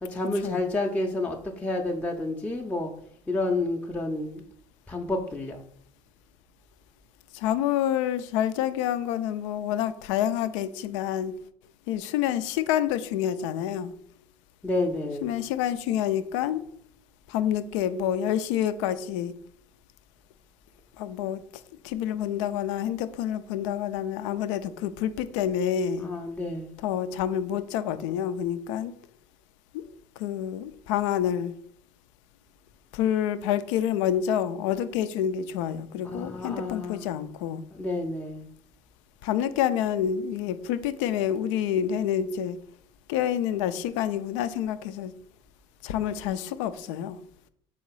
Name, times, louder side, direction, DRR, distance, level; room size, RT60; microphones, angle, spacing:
voice 1, 0.0-2.9 3.3-4.4 4.9-5.6 14.6-15.3 26.0-26.7 36.0-37.2 37.7-38.5, left 2 dB, 10° left, 0.6 m, -30 dB
voice 2, 7.3-11.3 11.9-13.9 15.2-16.6 17.3-19.3 21.0-21.4 21.8-26.1 26.8-28.9 29.7-29.8 30.2-31.5 32.9-37.6 39.2-42.6 43.1-45.1 45.8-47.2, left 10 dB, 75° left, 0.4 m, -28 dB
3.8 x 2.8 x 4.6 m
hypercardioid pair, 70°, 16 cm